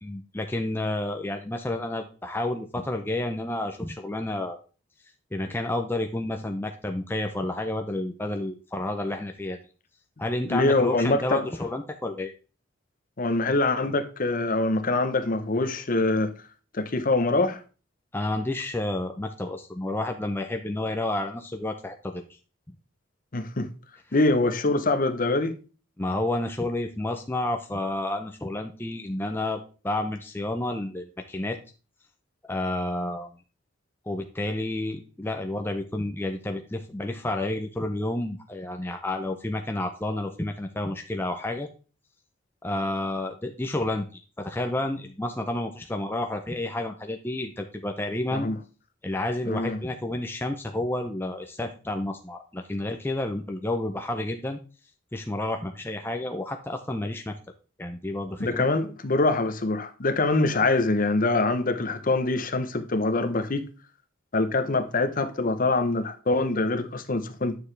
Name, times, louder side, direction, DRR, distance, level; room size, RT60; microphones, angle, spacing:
voice 1, 0.0-4.6 5.3-9.6 10.2-12.3 18.1-22.3 26.0-31.6 32.4-33.3 34.1-41.7 42.6-48.5 49.0-54.6 55.1-57.4 57.8-58.7, left 1 dB, 10° left, 0.5 m, -30 dB
voice 2, 10.5-11.5 13.2-16.3 16.7-17.6 23.3-23.7 24.1-25.5 48.3-48.6 49.5-49.8 58.4-63.7 64.3-67.5, left 2 dB, 45° left, 0.8 m, -24 dB
9.5 x 6.6 x 3.3 m
head